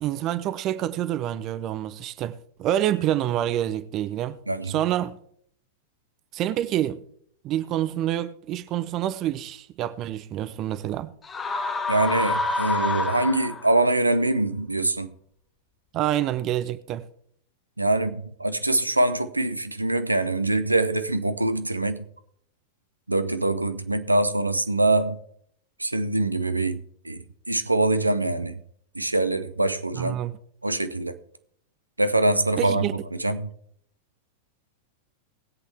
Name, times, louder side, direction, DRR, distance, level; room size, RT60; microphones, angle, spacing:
voice 1, 0.0-4.4 4.7-5.2 6.3-7.0 7.4-11.1 15.9-17.1 30.0-30.3 32.6-32.9, right 12 dB, 35° right, 0.6 m, -27 dB
voice 2, 4.5-4.8 11.9-15.1 17.8-22.1 23.1-25.2 25.8-28.6 28.9-30.2 30.6-31.2 32.0-33.5, right 2 dB, 85° right, 0.7 m, -24 dB
sound 1, 11.2-13.9, left 3 dB, 20° left, 1.1 m, -27 dB
20.0 x 8.2 x 3.4 m
figure-of-eight pair, 90°, 0 cm